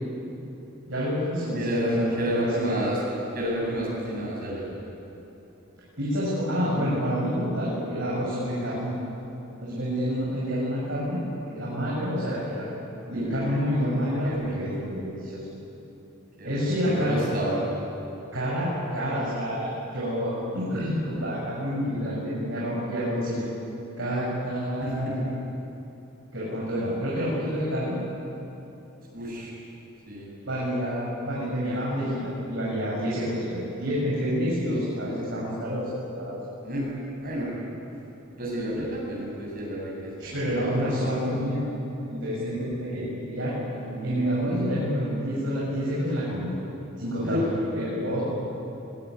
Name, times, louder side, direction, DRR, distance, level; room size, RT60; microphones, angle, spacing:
voice 1, 0.9-2.7 6.0-8.9 9.6-11.2 11.5-12.7 13.1-15.4 16.4-17.2 18.3-23.4 24.0-25.2 26.3-28.0 30.5-36.3 40.2-41.6 42.1-43.6 44.0-46.5 47.0-48.2, equal, 65° right, -7 dB, 7.2 m, -28 dB
voice 2, 1.5-3.0 3.3-4.7 13.1-13.4 13.9-14.0 14.2-14.8 16.4-17.6 24.8-25.2 29.1-29.5 30.1-30.3 36.6-36.9 37.2-37.5 38.3-40.5 40.8-40.9 43.7-44.8 47.2-47.4, equal, 45° right, -4 dB, 7.9 m, -31 dB
23.0 x 22.0 x 9.9 m, 3.0 s
head